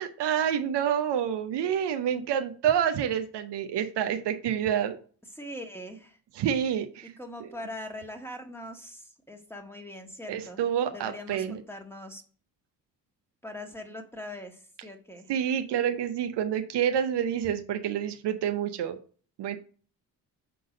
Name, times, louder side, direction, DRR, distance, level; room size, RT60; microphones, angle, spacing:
voice 1, 0.0-5.0 6.3-7.5 10.3-11.6 15.3-19.0 19.4-19.6, right 9 dB, 65° right, 7 dB, 0.8 m, -28 dB
voice 2, 5.4-6.2 7.2-10.6 10.9-12.2 13.4-15.3, left 1 dB, 5° left, 4 dB, 1.6 m, -41 dB
6.7 x 3.9 x 5.1 m, 0.42 s
supercardioid pair, 55°, 44 cm